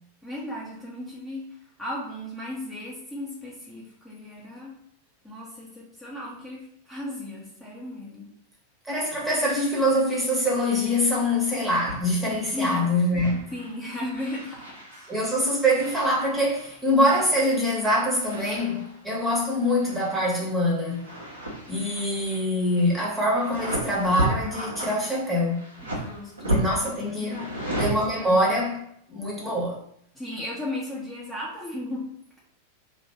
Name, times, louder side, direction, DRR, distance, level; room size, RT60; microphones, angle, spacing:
voice 1, 0.2-1.5 1.8-4.8 5.2-8.3 12.5-12.9 13.5-15.1 25.8-26.6 27.0-27.7 30.1-32.1, left 1 dB, 5° left, 1.2 m, -35 dB
voice 2, 8.9-13.5 15.1-21.1 21.7-25.6 26.5-27.5 27.8-28.8 29.1-29.7, equal, 10° right, 1.4 m, -24 dB
sound 1, 11.8-12.0 12.3-12.8 13.2-13.8 14.1-16.8 18.1-19.1 19.5-20.5 20.7-28.5, right 1 dB, 75° right, 1.2 m, -33 dB
3.1 x 2.7 x 4.4 m
figure-of-eight pair, 90°, 0 cm